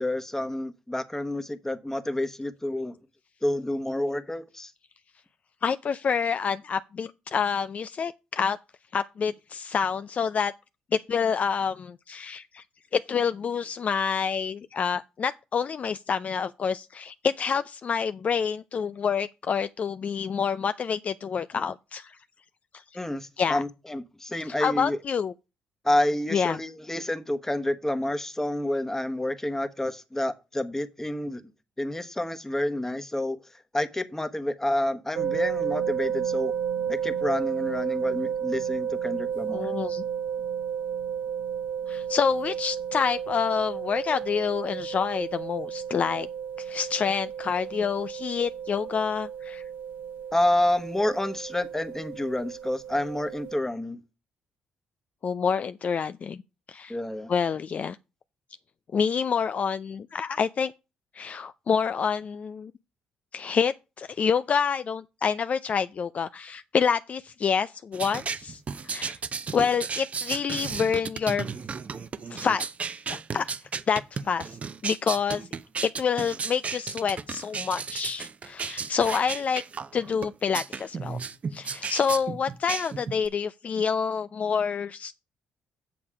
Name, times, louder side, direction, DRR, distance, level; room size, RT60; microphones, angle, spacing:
voice 1, 0.0-3.0 3.4-4.7 22.9-25.0 25.8-31.4 31.8-36.5 36.9-39.7 50.3-54.0 56.9-57.3, left 1 dB, 10° left, 1.2 m, -29 dB
voice 2, 5.6-8.6 8.9-10.5 11.1-12.6 12.9-22.2 22.7-22.8 23.4-23.6 24.6-25.3 26.3-26.6 39.5-40.0 41.9-46.3 46.6-49.6 55.2-56.4 56.7-57.0 57.3-58.0 58.9-60.7 61.1-62.7 63.3-68.6 68.9-69.2 69.5-71.5 72.3-72.6 73.1-73.5 73.9-74.6 74.8-75.5 75.8-79.6 79.9-81.2 81.5-85.1, left 6 dB, 45° left, 0.4 m, -27 dB
sound 1, 35.1-53.6, right 8 dB, 75° right, 0.7 m, -32 dB
sound 2, 67.9-83.3, right 5 dB, 45° right, 0.7 m, -34 dB
7.7 x 7.0 x 4.9 m
supercardioid pair, 70°, 3 cm